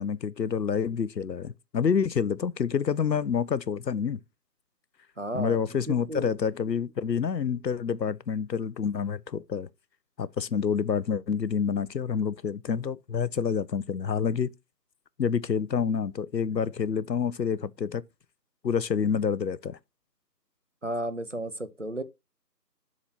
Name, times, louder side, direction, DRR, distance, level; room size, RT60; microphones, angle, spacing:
voice 1, 0.0-4.2 5.3-9.7 10.2-14.5 15.2-18.0 18.6-19.8, left 6 dB, 85° left, 0.6 m, -28 dB
voice 2, 5.2-5.6 6.1-6.3 20.8-22.0, right 1 dB, 50° right, 0.6 m, -33 dB
7.3 x 3.0 x 6.0 m
figure-of-eight pair, 165°, 49 cm